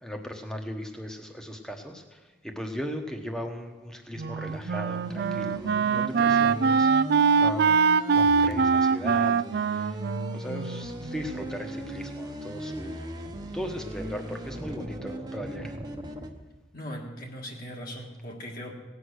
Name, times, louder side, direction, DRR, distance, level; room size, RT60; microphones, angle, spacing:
voice 1, 0.0-7.1 7.4-7.8 8.1-10.0 10.3-13.1 13.5-15.7, equal, 5° left, 4 dB, 1.1 m, -37 dB
Wind instrument woodwind instrument, 4.2-11.4, right 5 dB, 55° right, 0.3 m, -23 dB
sound 1, 4.4-16.3, right 1 dB, 20° right, 1.0 m, -38 dB
voice 2, 16.7-18.7, equal, 50° left, -1 dB, 1.8 m, -39 dB
17.5 x 8.2 x 6.4 m, 1.3 s
head